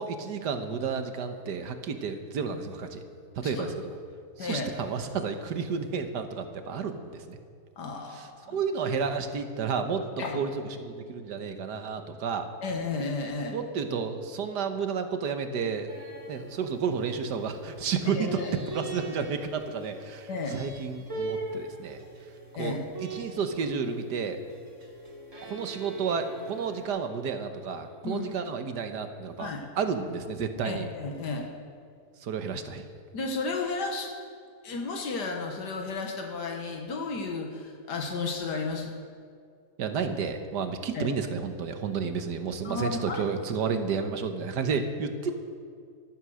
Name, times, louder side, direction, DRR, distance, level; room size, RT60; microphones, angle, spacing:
voice 1, 0.0-3.0 3.3-3.7 4.4-7.4 8.1-10.0 10.3-10.5 10.8-12.5 13.5-15.9 16.3-18.4 18.7-22.0 22.6-24.4 25.4-29.5 29.8-30.9 32.2-32.8 39.8-45.3, right 6 dB, 85° right, 7 dB, 1.7 m, -31 dB
voice 2, 7.8-8.6 10.2-10.5 12.6-13.6 18.1-18.5 20.3-20.6 22.5-22.8 28.0-28.3 29.4-29.7 30.6-31.5 33.1-34.1 34.6-39.0 40.9-41.1 42.6-43.2, left 3 dB, 90° left, 2 dB, 2.0 m, -33 dB
sound 1, 15.9-26.8, right 2 dB, 50° right, 3.0 m, -41 dB
Bowed string instrument, 25.3-28.9, right 7 dB, 15° right, 1.3 m, -47 dB
14.5 x 13.5 x 6.3 m, 2.2 s
omnidirectional pair, 1.7 m